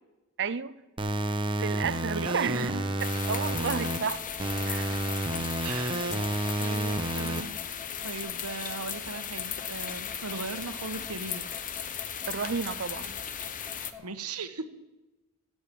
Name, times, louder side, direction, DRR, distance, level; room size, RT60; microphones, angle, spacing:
voice 1, 0.4-0.7 1.6-2.7 3.3-4.2 4.6-5.0 10.3-10.4 12.3-13.2, right 6 dB, 55° right, 0.7 m, -32 dB
sound 1, 1.0-4.0 4.4-7.4, right 1 dB, 20° right, 1.2 m, -30 dB
voice 2, 2.1-2.8 5.6-6.2 6.6-7.6 8.0-11.5 14.0-14.7, right 4 dB, 85° right, 1.4 m, -38 dB
sound 2, 3.0-13.9, left 8 dB, 35° left, 0.9 m, -37 dB
sound 3, 3.2-14.0, left 6 dB, 5° right, 1.7 m, -48 dB
17.5 x 7.9 x 7.0 m
head